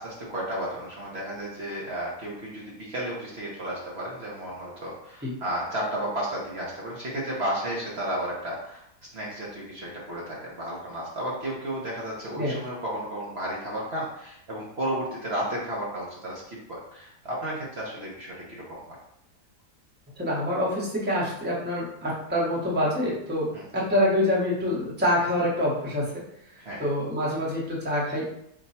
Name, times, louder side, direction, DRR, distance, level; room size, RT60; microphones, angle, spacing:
voice 1, 0.0-8.8 9.1-19.0 23.5-23.6 26.6-26.8, right 1 dB, 50° right, -5 dB, 1.0 m, -33 dB
voice 2, 20.2-26.2 26.8-28.3, left 1 dB, 10° right, -5 dB, 0.9 m, -26 dB
4.4 x 2.3 x 4.1 m, 0.76 s
omnidirectional pair, 1.6 m